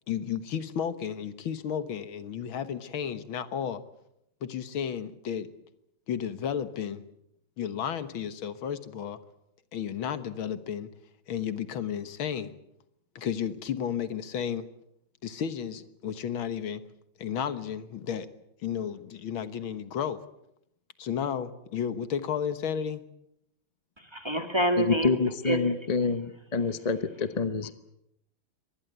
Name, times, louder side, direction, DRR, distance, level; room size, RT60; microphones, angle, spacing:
voice 1, 0.1-3.8 4.4-5.5 6.1-7.0 7.6-9.2 9.7-10.9 11.3-12.6 13.2-14.7 15.2-16.8 17.2-18.3 18.6-20.2 21.0-23.1, left 8 dB, 75° left, 2.1 m, -33 dB
voice 2, 24.1-25.2 25.5-25.7, equal, 15° right, 1.9 m, -27 dB
voice 3, 24.8-27.7, left 4 dB, 40° left, 0.5 m, -27 dB
24.5 x 20.0 x 8.1 m
omnidirectional pair, 2.2 m